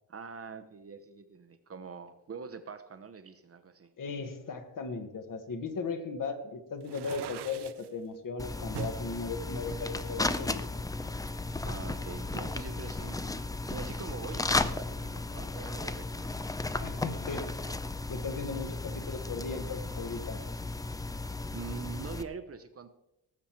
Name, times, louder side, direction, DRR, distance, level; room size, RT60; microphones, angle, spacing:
voice 1, 0.1-3.9 11.6-13.2 13.7-16.3 21.5-22.9, right 5 dB, 35° right, 9 dB, 0.7 m, -44 dB
voice 2, 4.0-10.7 16.8-17.6 18.1-20.4, left 4 dB, 50° left, 8 dB, 1.3 m, -37 dB
sound 1, 6.8-7.9 8.7-9.0 9.6-10.7, right 10 dB, 70° right, 0.7 m, -42 dB
sound 2, 8.4-22.2, left 2 dB, 10° left, 0.3 m, -35 dB
18.5 x 7.1 x 4.4 m, 0.90 s
wide cardioid pair, 155°, 41 cm